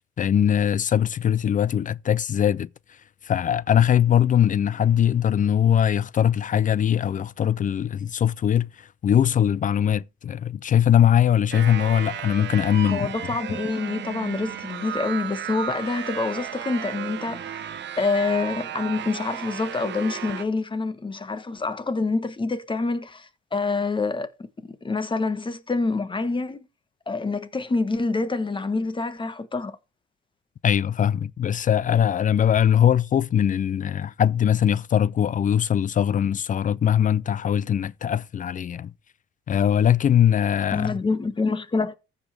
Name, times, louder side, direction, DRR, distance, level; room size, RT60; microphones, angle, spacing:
voice 1, 0.2-3.0 3.2-13.1 13.5-13.6 30.6-38.9 39.5-40.9, left 9 dB, 40° left, 0.4 m, -21 dB
sound 1, 11.5-20.4, right 10 dB, 65° right, 1.0 m, -34 dB
voice 2, 12.8-17.7 18.0-24.5 24.8-26.6 27.1-29.7 40.7-41.9, left 3 dB, 25° left, 1.3 m, -26 dB
15.0 x 5.2 x 3.3 m
cardioid pair, 90°, 20 cm